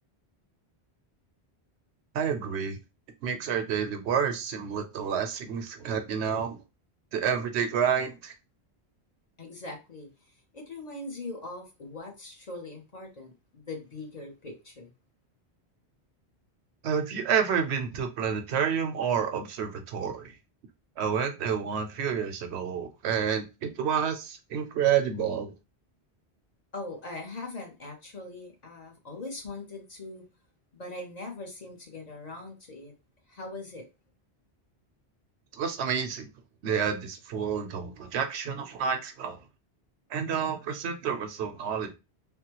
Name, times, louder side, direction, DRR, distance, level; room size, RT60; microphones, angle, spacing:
voice 1, 2.1-2.8 3.2-6.6 7.1-8.3 16.8-20.3 21.0-25.5 35.5-36.3 36.6-39.4 40.1-41.9, right 7 dB, 80° right, 7 dB, 0.9 m, -29 dB
voice 2, 9.4-14.9 26.7-30.2 30.7-32.9 33.3-33.9, left 2 dB, 40° left, 2 dB, 0.8 m, -41 dB
3.4 x 2.1 x 2.9 m, 0.27 s
omnidirectional pair, 1.1 m